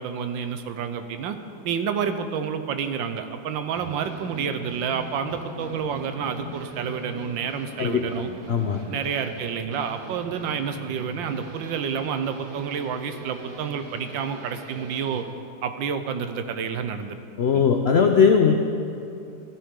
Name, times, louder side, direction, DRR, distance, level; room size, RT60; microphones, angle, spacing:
voice 1, 0.0-1.4 1.6-8.3 8.9-15.2 15.6-17.2 17.5-17.6, right 7 dB, 85° right, 8 dB, 1.5 m, -29 dB
sound 1, 3.7-15.2, right 2 dB, 65° right, 1.8 m, -41 dB
voice 2, 8.5-8.8 17.4-18.5, left 6 dB, 90° left, 4 dB, 0.5 m, -19 dB
15.0 x 13.0 x 3.7 m, 2.6 s
omnidirectional pair, 2.0 m